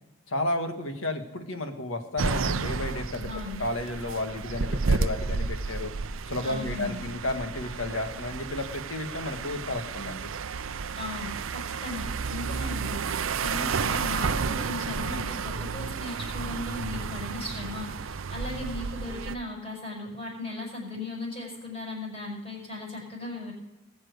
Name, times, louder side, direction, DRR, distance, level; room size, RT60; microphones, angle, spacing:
voice 1, 0.3-3.3 3.6-5.9 6.3-10.3, left 2 dB, 65° left, 5 dB, 1.7 m, -32 dB
sound 1, 2.2-19.3, right 5 dB, 60° right, 0.6 m, -31 dB
voice 2, 3.2-3.6 6.4-7.0 10.9-13.0 13.4-23.5, left 2 dB, 30° left, -2 dB, 6.3 m, -37 dB
20.0 x 7.4 x 6.6 m, 0.96 s
head